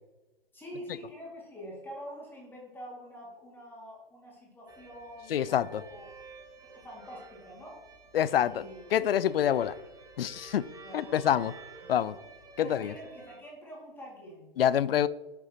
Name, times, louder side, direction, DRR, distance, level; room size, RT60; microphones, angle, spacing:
voice 1, 0.5-6.1 6.6-7.8 8.4-8.8 10.8-11.4 11.8-12.2 12.6-14.5, equal, 5° left, -4 dB, 2.2 m, -46 dB
sound 1, 4.7-13.4, right 4 dB, 10° right, 0.8 m, -51 dB
voice 2, 5.3-5.8 8.1-8.6 8.9-9.7 10.2-10.7 10.9-11.5 11.9-12.1 12.6-12.9 14.6-15.1, left 10 dB, 75° left, 18 dB, 0.5 m, -26 dB
8.6 x 6.8 x 2.9 m, 1.1 s
hypercardioid pair, 130°, 29 cm